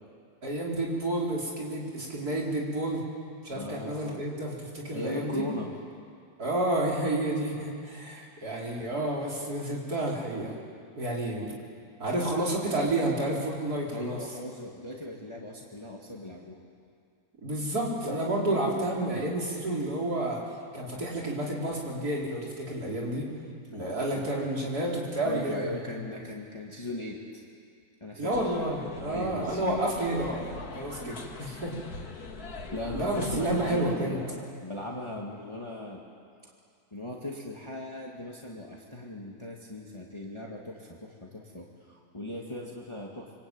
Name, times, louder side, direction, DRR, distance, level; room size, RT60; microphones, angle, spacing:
voice 1, 0.4-3.0 3.4-5.5 6.4-10.6 11.0-11.5 12.0-14.2 17.4-20.4 20.7-23.3 23.7-25.8 28.2-31.7 32.9-34.2, right 1 dB, 75° right, -3 dB, 4.8 m, -30 dB
voice 2, 3.5-4.2 4.9-5.7 13.9-16.6 23.7-24.3 25.2-27.4 28.0-28.3 29.0-29.9 32.7-36.0 36.9-43.3, left 1 dB, 20° left, -2 dB, 2.3 m, -38 dB
sound 1, 28.3-33.9, left 3 dB, 70° left, 2.5 m, -42 dB
25.5 x 25.0 x 9.1 m, 2.3 s
omnidirectional pair, 1.7 m